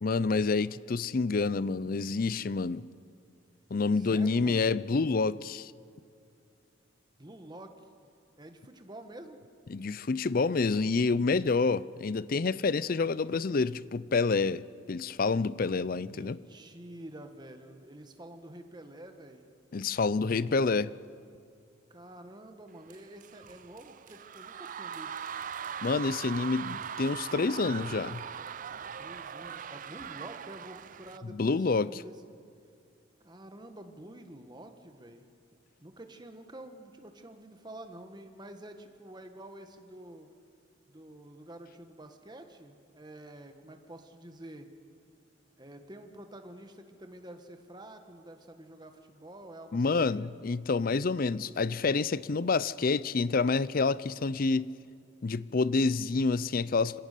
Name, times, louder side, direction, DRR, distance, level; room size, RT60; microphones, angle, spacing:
voice 1, 0.0-2.8 3.7-5.7 9.7-14.6 14.9-16.4 19.7-20.9 25.8-28.2 31.2-32.0 49.7-54.7 55.2-57.0, left 4 dB, 45° left, 0.5 m, -28 dB
voice 2, 4.0-4.7 7.2-7.7 8.4-9.4 16.0-19.5 21.9-25.2 29.0-32.4 33.2-35.2 35.8-40.3 40.8-44.7 45.6-50.3, right 1 dB, 20° right, 1.4 m, -48 dB
sound 1, 22.9-31.2, right 7 dB, 40° right, 0.4 m, -40 dB
26.5 x 17.0 x 6.7 m
head